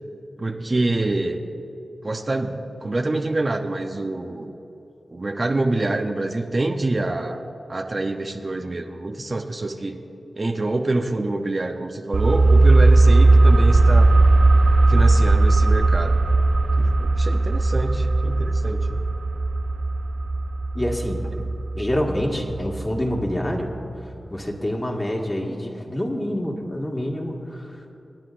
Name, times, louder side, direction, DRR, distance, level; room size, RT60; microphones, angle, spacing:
voice 1, 0.4-1.4 2.0-4.5 5.1-7.4 7.7-10.0 10.4-14.1 14.9-16.2 16.8-19.0 21.4-21.5, right 2 dB, 45° right, 4 dB, 0.8 m, -26 dB
sound 1, 12.1-23.5 23.8-23.9, right 2 dB, 70° right, 0.5 m, -18 dB
voice 2, 20.7-21.2 21.8-23.7 24.3-27.7, left 1 dB, 25° left, -1 dB, 1.9 m, -26 dB
25.5 x 9.6 x 2.6 m, 2.9 s
cardioid pair, 45°, 0 cm